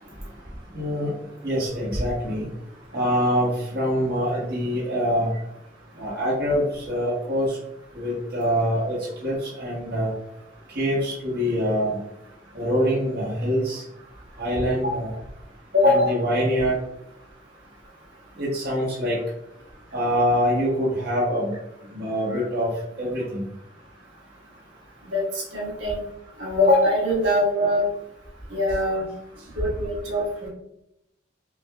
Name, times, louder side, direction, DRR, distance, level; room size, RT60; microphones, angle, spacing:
voice 1, 0.7-1.1 1.4-2.5 2.9-5.3 6.0-7.6 7.9-10.1 10.7-12.0 12.5-13.8 14.4-15.1 15.8-16.8 18.4-19.2 19.9-21.5 21.9-22.7 23.0-23.5, equal, 60° right, -5 dB, 1.3 m, -24 dB
voice 2, 15.7-16.1 22.3-22.4 25.1-26.0 26.4-27.8 28.5-29.1 29.5-30.5, left 1 dB, 85° right, -6 dB, 1.4 m, -22 dB
5.9 x 2.4 x 2.3 m, 0.81 s
head